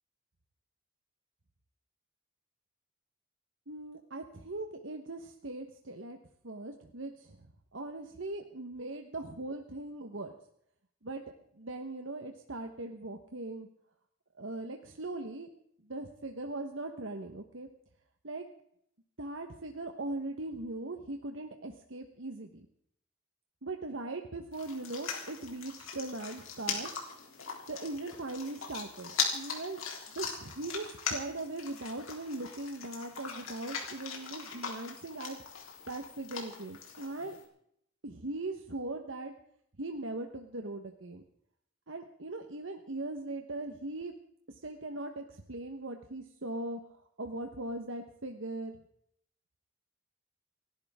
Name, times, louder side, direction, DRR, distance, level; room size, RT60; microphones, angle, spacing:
voice 1, 3.7-6.2 6.4-10.3 11.0-11.2 11.5-13.7 14.3-15.5 15.8-17.7 18.2-18.4 19.2-22.7 23.6-26.9 27.7-29.8 30.1-35.4 35.9-37.4 38.0-39.3 39.8-41.2 41.9-44.1 44.5-48.8, right 2 dB, 70° right, 5 dB, 1.2 m, -40 dB
sound 1, 24.5-37.4, left 6 dB, 85° left, 3.6 m, -40 dB
30.0 x 11.5 x 3.6 m, 0.69 s
head